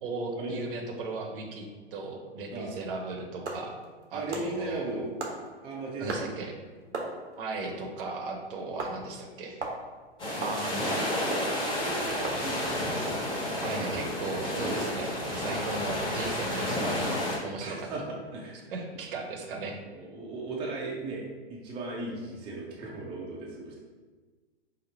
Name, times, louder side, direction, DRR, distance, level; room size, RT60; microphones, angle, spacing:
voice 1, 0.0-3.7 4.1-5.1 6.0-6.5 7.4-9.6 10.4-11.3 13.6-17.8 18.7-19.8, right 3 dB, 55° right, 2 dB, 0.8 m, -37 dB
sound 1, 3.4-14.9, right 3 dB, 85° right, 1.0 m, -40 dB
voice 2, 4.1-5.1 5.6-6.4 11.7-12.9 15.7-15.9 17.6-18.6 19.9-23.8, right 2 dB, 15° right, -4 dB, 0.6 m, -37 dB
sound 2, 10.2-17.4, left 1 dB, 15° left, 1.0 m, -31 dB
5.1 x 2.0 x 4.2 m, 1.4 s
hypercardioid pair, 120°, 34 cm